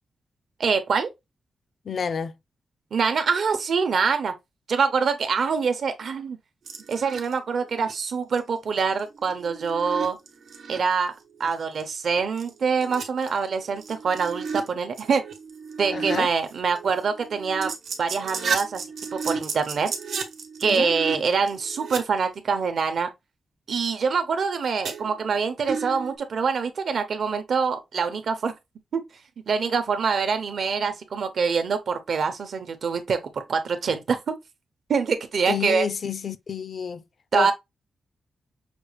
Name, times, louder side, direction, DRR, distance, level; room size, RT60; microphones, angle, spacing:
voice 1, 0.6-1.1 2.9-4.3 4.7-6.4 6.9-10.2 10.7-11.1 11.4-15.2 15.8-17.7 18.0-18.8 19.1-19.9 20.6-23.1 23.7-28.5 28.9-29.0 29.5-34.3 34.9-35.9 37.3-37.5, right 5 dB, 55° right, 0.8 m, -25 dB
voice 2, 1.8-2.4 15.9-16.3 20.7-20.9 35.5-37.0 37.3-37.5, left 6 dB, 45° left, 0.4 m, -29 dB
sound 1, 6.7-7.3 7.7-8.0 8.3-8.4 9.0-10.8 11.4-11.5 11.8-11.9 12.1-14.7 14.9-16.2 16.5-22.0 24.8-25.4 25.7-26.2, right 5 dB, 85° right, 1.0 m, -33 dB
6.0 x 2.4 x 3.1 m
wide cardioid pair, 165°, 0 cm